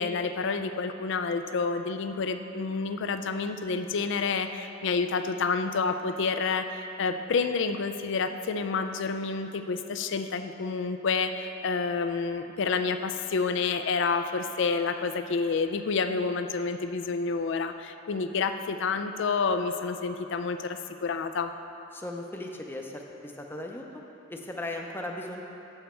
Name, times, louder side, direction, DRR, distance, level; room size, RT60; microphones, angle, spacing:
voice 1, 0.0-21.5, left 4 dB, 65° left, 8 dB, 0.4 m, -29 dB
voice 2, 21.9-23.9 24.3-25.4, left 1 dB, 10° left, 1 dB, 0.6 m, -37 dB
7.9 x 7.3 x 4.4 m, 2.9 s
head